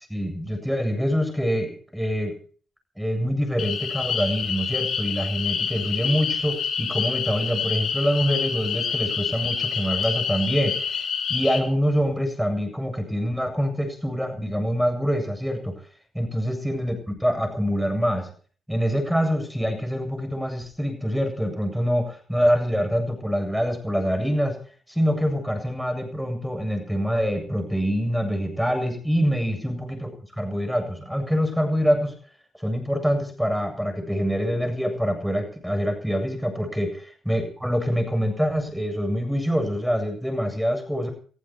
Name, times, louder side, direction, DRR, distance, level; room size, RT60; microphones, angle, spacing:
voice 1, 0.1-2.3 3.0-11.0 11.3-15.8 16.1-18.3 18.7-24.6 24.9-32.1 32.6-36.9 37.3-41.1, equal, ahead, 6 dB, 7.8 m, -25 dB
sound 1, 3.6-11.6, left 6 dB, 70° left, 3.7 m, -27 dB
20.0 x 14.5 x 4.6 m, 0.43 s
supercardioid pair, 55°, 0 cm